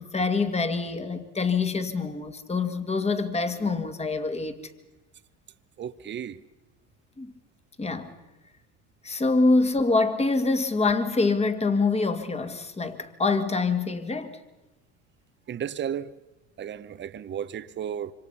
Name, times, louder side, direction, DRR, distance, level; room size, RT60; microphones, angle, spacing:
voice 1, 0.0-4.6 7.2-7.3 7.8-8.1 9.0-14.4, left 3 dB, 20° left, 2.0 m, -25 dB
voice 2, 5.8-6.4 15.5-16.1 16.6-18.1, right 9 dB, 35° right, 0.9 m, -33 dB
26.5 x 25.0 x 5.6 m
supercardioid pair, 105°, 32 cm